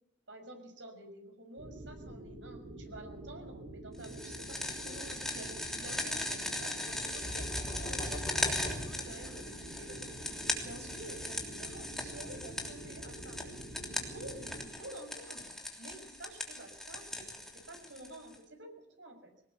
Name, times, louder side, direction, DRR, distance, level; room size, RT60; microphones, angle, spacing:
voice 1, 0.3-13.4 13.9-18.7 19.0-19.3, right 1 dB, 80° right, 5 dB, 6.1 m, -50 dB
sound 1, 1.6-14.6, right 1 dB, 65° right, 7.3 m, -47 dB
sound 2, 4.0-18.4, left 1 dB, ahead, 3.2 m, -39 dB
sound 3, 6.9-9.8, equal, 20° left, 7.4 m, -41 dB
21.5 x 19.0 x 7.2 m, 0.75 s
head